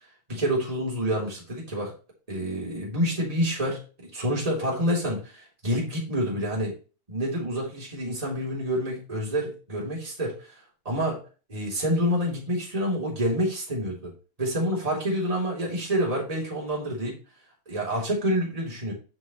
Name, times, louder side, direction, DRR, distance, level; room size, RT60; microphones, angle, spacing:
voice 1, 0.3-1.9 2.3-6.7 7.1-10.5 10.8-11.2 11.5-14.1 14.4-17.2 17.7-18.9, equal, 10° right, -4 dB, 3.2 m, -28 dB
7.7 x 6.1 x 3.1 m, 0.34 s
omnidirectional pair, 3.9 m